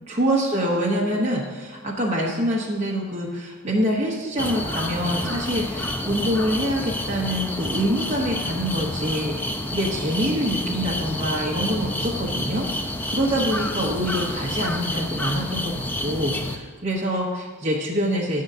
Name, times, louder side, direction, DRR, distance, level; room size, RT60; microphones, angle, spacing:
voice 1, 0.1-18.4, equal, 35° right, -4 dB, 0.9 m, -25 dB
sound 1, 4.4-16.6, left 1 dB, 10° left, 0.3 m, -29 dB
8.7 x 3.7 x 6.7 m, 1.4 s
head